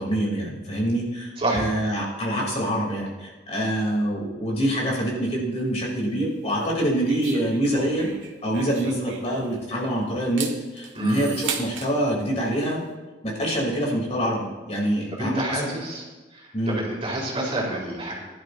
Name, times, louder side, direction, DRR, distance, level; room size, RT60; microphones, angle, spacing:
voice 1, 0.0-8.1 8.4-10.5 10.7-12.8 13.2-15.7 16.5-16.8, right 1 dB, 35° left, -3 dB, 3.0 m, -25 dB
sound 1, 6.5-9.8 10.2-11.9, right 5 dB, 90° right, 1.6 m, -35 dB
voice 2, 10.9-11.3 15.1-16.0 16.3-18.2, right 1 dB, 35° right, -4 dB, 3.7 m, -28 dB
19.5 x 11.5 x 2.6 m, 1.2 s
head